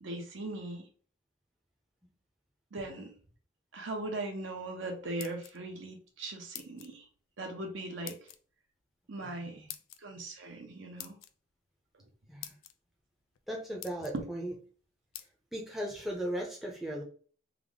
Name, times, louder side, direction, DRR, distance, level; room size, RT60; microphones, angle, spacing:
voice 1, 0.0-0.9 2.7-3.1 3.7-7.0 7.4-8.2 9.1-9.7 10.0-11.2, right 2 dB, 60° right, 3 dB, 0.7 m, -39 dB
sound 1, 5.0-5.8 6.5-6.9 8.0-8.4 9.7-10.0 11.0-11.3 12.0-12.1 12.4-12.7 13.3-13.4 13.8-14.2 15.1-15.3, left 12 dB, 70° left, 0.3 m, -45 dB
voice 2, 9.2-9.7 12.3-12.5 13.5-14.5 15.5-17.0, right 1 dB, ahead, -3 dB, 0.5 m, -37 dB
3.5 x 2.0 x 3.6 m, 0.42 s
head